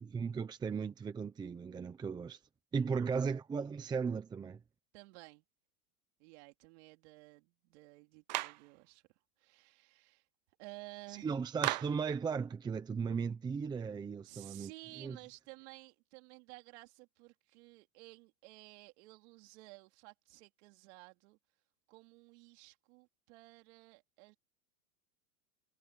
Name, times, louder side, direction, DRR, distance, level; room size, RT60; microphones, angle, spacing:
voice 1, 0.1-2.4 2.7-4.6 11.1-14.7 15.0-15.2, right 5 dB, 10° right, 0.9 m, -36 dB
voice 2, 2.9-3.3 4.9-5.4 6.2-9.0 9.4-10.2 10.6-11.4 14.2-21.4 21.9-24.4, right 25 dB, 50° right, 3.7 m, -54 dB
Clapping, 8.3-8.7 11.6-12.1, right 19 dB, 35° right, 0.4 m, -35 dB
supercardioid pair, 155°, 44 cm